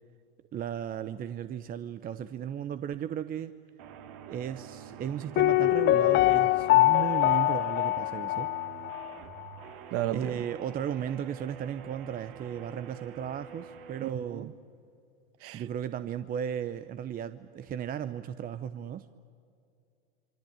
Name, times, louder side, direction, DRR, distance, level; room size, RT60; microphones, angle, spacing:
voice 1, 0.5-3.5 4.3-8.5 10.1-14.5 15.5-19.1, right 9 dB, 25° right, 0.8 m, -35 dB
sound 1, 3.8-14.1, right 8 dB, 60° right, 2.5 m, -47 dB
Piano, 5.4-9.1 9.4-9.5, left 17 dB, 30° left, 0.6 m, -24 dB
voice 2, 9.9-10.3 14.0-14.5 15.4-15.6, right 13 dB, 45° right, 1.2 m, -33 dB
27.5 x 24.0 x 8.9 m
hypercardioid pair, 100°, 32 cm